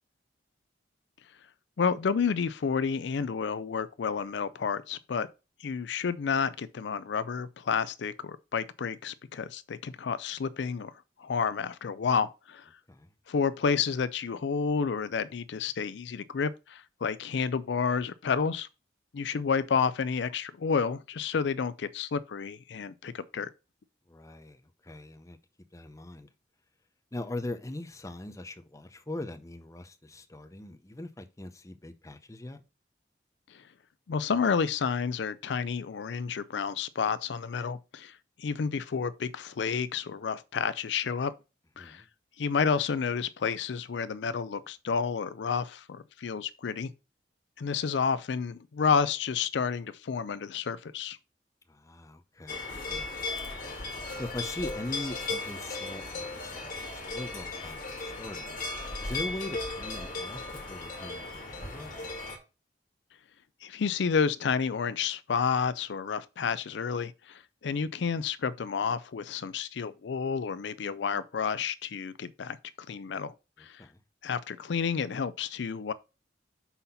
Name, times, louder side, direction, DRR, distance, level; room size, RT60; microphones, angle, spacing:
voice 1, 1.8-5.3 5.6-10.9 11.2-12.7 13.3-18.7 19.1-23.5 33.5-33.6 34.1-41.3 41.8-42.0 42.4-46.9 47.6-51.2 63.6-72.6 72.9-73.8 74.2-75.9, left 6 dB, 70° left, 0.4 m, -30 dB
voice 2, 24.1-25.4 25.7-26.3 27.1-32.6 41.8-42.1 51.7-53.3 54.2-58.6 59.0-60.4 60.7-62.0 73.8-74.0, left 1 dB, 15° left, 0.6 m, -41 dB
sound 1, 52.5-62.4, left 3 dB, 45° left, 1.7 m, -36 dB
5.6 x 4.2 x 5.6 m
head